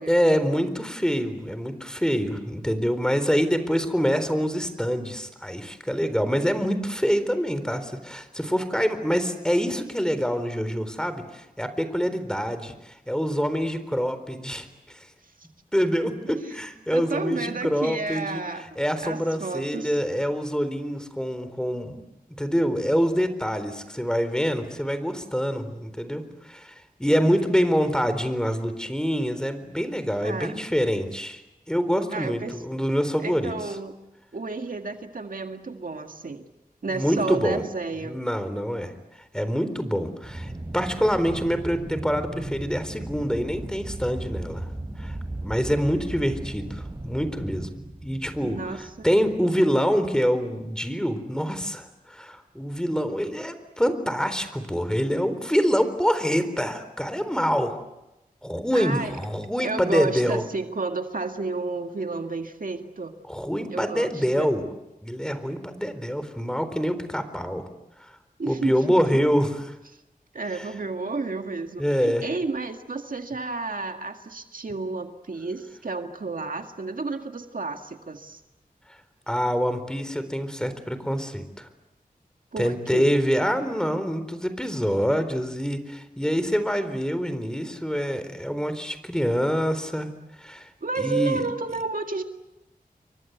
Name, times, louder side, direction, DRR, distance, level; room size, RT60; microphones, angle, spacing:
voice 1, 0.1-15.1 15.7-18.4 18.8-22.0 22.4-26.7 27.0-31.4 31.7-33.5 36.9-37.6 38.0-38.9 39.3-44.7 45.0-47.7 48.0-48.8 49.0-57.8 58.4-60.4 63.3-64.7 65.0-67.7 68.0-68.1 68.5-69.6 70.5-70.7 71.8-72.2 79.3-81.7 82.6-90.1 90.4-90.7 91.0-91.4, equal, 5° left, 10 dB, 4.1 m, -25 dB
voice 2, 16.9-18.7 19.0-20.0 30.2-30.5 32.1-32.6 33.2-34.0 34.3-36.4 36.8-38.2 48.4-49.1 58.7-59.2 59.6-63.1 63.7-64.5 68.4-69.2 70.3-78.4 82.5-83.1 90.8-92.2, right 3 dB, 65° right, 5 dB, 2.0 m, -31 dB
Aircraft, 40.2-49.7, right 1 dB, 25° right, 4.7 m, -36 dB
29.5 x 23.5 x 8.2 m, 0.92 s
wide cardioid pair, 70°, 15 cm